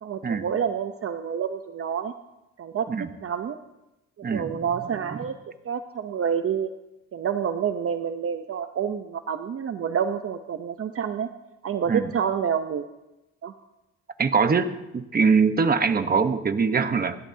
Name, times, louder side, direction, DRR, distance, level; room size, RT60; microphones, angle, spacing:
voice 1, 0.0-2.1 2.6-2.9 3.2-3.6 4.3-5.3 5.6-6.7 7.1-11.3 11.6-12.8 13.4-13.5, right 7 dB, 50° right, 7 dB, 0.8 m, -28 dB
voice 2, 4.2-4.6 11.9-12.1 14.2-17.2, right 5 dB, 30° right, 9 dB, 1.1 m, -23 dB
29.0 x 12.5 x 2.8 m, 0.96 s
cardioid pair, 90°, 30 cm